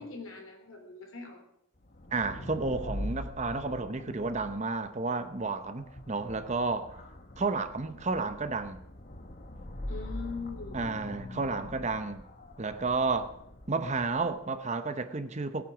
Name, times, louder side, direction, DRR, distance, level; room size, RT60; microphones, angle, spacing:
voice 1, 0.0-1.4 9.9-11.1, left 4 dB, 70° left, 3.6 m, -41 dB
sound 1, 1.8-14.4, left 1 dB, 40° left, 1.2 m, -43 dB
voice 2, 2.1-7.0 7.4-8.8 10.7-12.2 12.6-13.4 13.7-15.6, right 3 dB, 30° right, 0.8 m, -31 dB
18.5 x 9.0 x 6.1 m
head